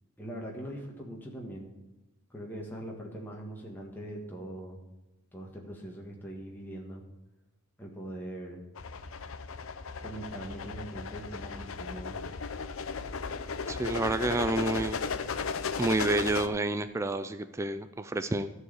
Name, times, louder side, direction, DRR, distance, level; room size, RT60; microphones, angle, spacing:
voice 1, 0.2-1.7 2.3-4.8 5.3-7.0 7.8-8.6 10.0-12.2, right 1 dB, 10° left, -2 dB, 1.5 m, -41 dB
sound 1, 8.8-16.5, left 5 dB, 80° left, 0.7 m, -36 dB
voice 2, 13.7-15.0 15.8-18.5, right 2 dB, 15° right, 10 dB, 0.3 m, -29 dB
14.0 x 4.7 x 8.1 m, 1.0 s
head